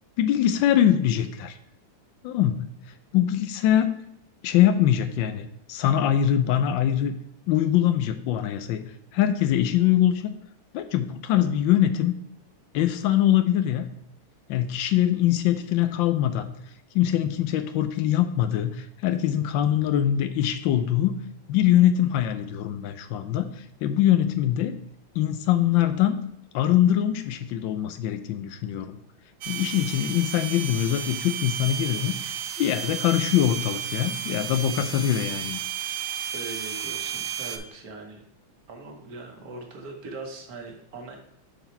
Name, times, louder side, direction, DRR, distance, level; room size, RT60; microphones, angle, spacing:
voice 1, 0.2-1.6 2.2-2.7 3.1-3.9 4.4-7.1 7.5-8.8 9.1-10.2 10.7-12.2 12.7-13.9 14.5-16.5 16.9-21.2 21.5-23.5 23.8-24.7 25.2-26.3 26.5-29.0 29.5-35.6, left 11 dB, 80° left, 10 dB, 1.3 m, -23 dB
sound 1, 29.4-37.6, right 8 dB, 85° right, 0.7 m, -33 dB
voice 2, 36.3-38.2 38.7-41.2, right 3 dB, 55° right, 2 dB, 1.5 m, -40 dB
7.2 x 3.9 x 4.4 m, 0.72 s
omnidirectional pair, 2.2 m